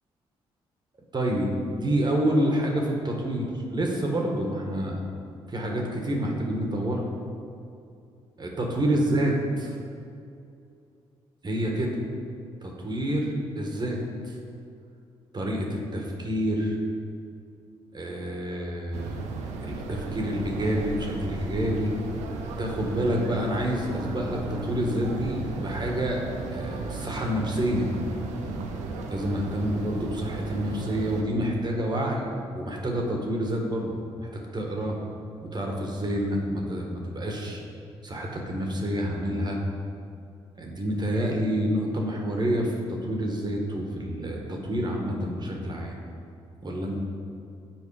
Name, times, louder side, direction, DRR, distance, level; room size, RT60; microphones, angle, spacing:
voice 1, 1.1-5.0 5.5-7.0 8.4-9.3 9.6-9.8 11.4-12.0 12.6-14.0 14.2-14.3 15.3-16.8 17.9-19.4 19.6-21.9 22.6-26.2 26.5-27.9 29.1-32.3 32.5-34.9 35.4-37.6 38.0-39.6 40.6-46.0 46.6-47.0, equal, 40° right, 0 dB, 1.5 m, -28 dB
sound 1, 18.9-31.2, right 3 dB, 85° right, 0.7 m, -35 dB
7.4 x 4.7 x 4.9 m, 2.5 s
supercardioid pair, 55°, 12 cm